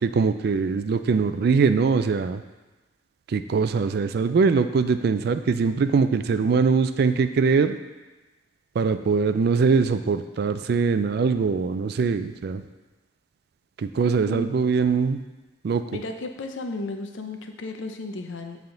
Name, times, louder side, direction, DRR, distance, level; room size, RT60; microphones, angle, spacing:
voice 1, 0.0-2.4 3.3-7.8 8.8-12.6 13.8-15.2 15.6-15.8, right 5 dB, 55° right, 10 dB, 0.3 m, -22 dB
voice 2, 14.2-14.6 15.9-18.6, left 2 dB, 80° left, 5 dB, 0.6 m, -34 dB
8.1 x 3.5 x 3.8 m, 1.2 s
head